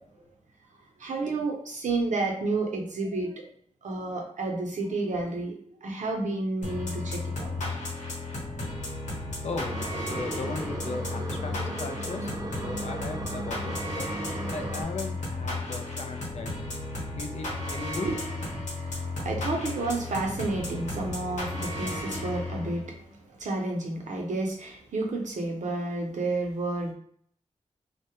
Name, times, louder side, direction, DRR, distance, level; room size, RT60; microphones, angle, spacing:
voice 1, 1.0-3.5 3.8-5.6 5.8-7.8 18.0-18.2 18.8-23.0 23.4-26.9, right 2 dB, 90° right, 0 dB, 0.6 m, -31 dB
sound 1, 6.6-22.9, left 2 dB, 90° left, 0.9 m, -34 dB
voice 2, 9.4-9.8 10.1-14.1 14.5-16.5 17.2-18.1, left 3 dB, 65° left, 5 dB, 0.4 m, -37 dB
sound 2, 9.5-14.8, right 2 dB, 30° right, 0.3 m, -37 dB
2.2 x 2.0 x 2.8 m, 0.62 s
cardioid pair, 60°, 12 cm